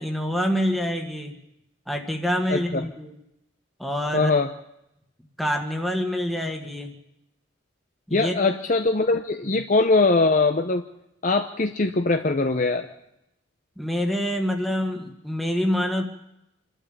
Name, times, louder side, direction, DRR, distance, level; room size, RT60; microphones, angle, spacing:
voice 1, 0.0-1.4 1.9-3.2 3.8-4.3 5.4-7.0 8.1-8.6 9.4-9.6 13.8-16.1, equal, ahead, 2 dB, 1.7 m, -26 dB
voice 2, 2.5-2.8 4.1-4.5 8.1-10.8 11.2-12.9, left 3 dB, 40° left, 6 dB, 0.8 m, -21 dB
26.5 x 12.5 x 8.8 m, 0.84 s
head